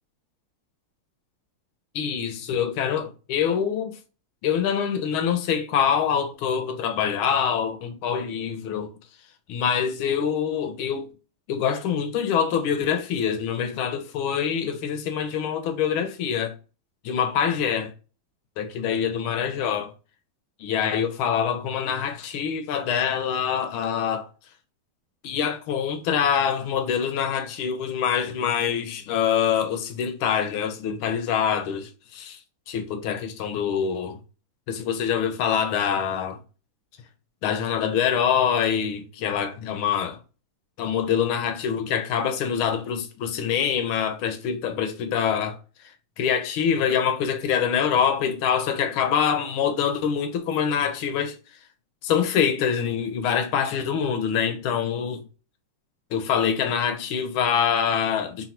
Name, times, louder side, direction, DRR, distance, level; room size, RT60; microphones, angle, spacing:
voice 1, 1.9-4.0 4.4-8.9 9.5-11.1 11.5-16.5 17.0-17.9 18.6-19.9 20.6-24.3 25.2-32.4 32.7-34.2 34.7-36.4 37.4-40.2 40.8-45.6 46.2-51.4 52.0-55.2 56.1-58.5, left 8 dB, 75° left, 1.6 m, -25 dB
4.1 x 2.2 x 4.3 m
omnidirectional pair, 2.4 m